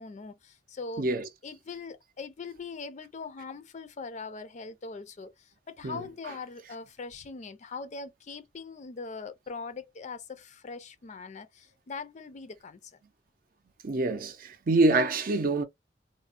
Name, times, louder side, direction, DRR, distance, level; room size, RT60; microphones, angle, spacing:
voice 1, 0.0-1.1 1.4-13.0, left 4 dB, 40° left, 0.4 m, -41 dB
voice 2, 1.0-1.3 5.8-6.0 13.8-15.6, right 2 dB, 50° right, 0.6 m, -25 dB
3.2 x 2.1 x 2.5 m
head